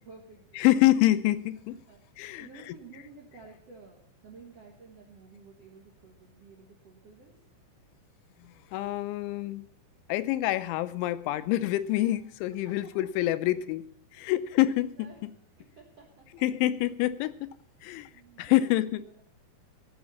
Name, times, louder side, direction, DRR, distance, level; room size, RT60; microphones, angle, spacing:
voice 1, 0.0-0.7 1.9-7.4 12.5-13.1 14.2-14.3 14.7-16.5 17.8-18.7 19.0-19.2, right 4 dB, 65° right, 0 dB, 1.5 m, -53 dB
voice 2, 0.6-1.8 2.2-2.5 8.4-9.7 10.1-13.8 14.1-15.1 16.4-17.6 17.8-18.1 18.4-19.0, left 15 dB, 85° left, 14 dB, 3.0 m, -26 dB
17.0 x 7.2 x 7.0 m, 0.64 s
omnidirectional pair, 5.3 m